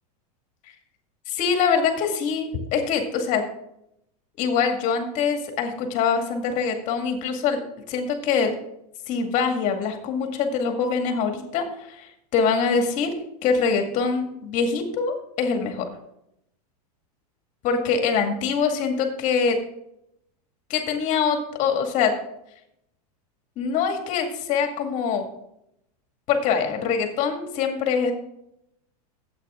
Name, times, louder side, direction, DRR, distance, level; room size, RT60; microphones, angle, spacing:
voice 1, 1.3-3.4 4.4-7.6 7.9-8.5 9.1-13.1 13.4-15.9 17.6-19.6 20.7-22.1 23.6-25.2 26.3-28.1, left 6 dB, 40° left, 4 dB, 2.1 m, -24 dB
12.5 x 8.5 x 3.7 m, 0.78 s
supercardioid pair, 145°, 20 cm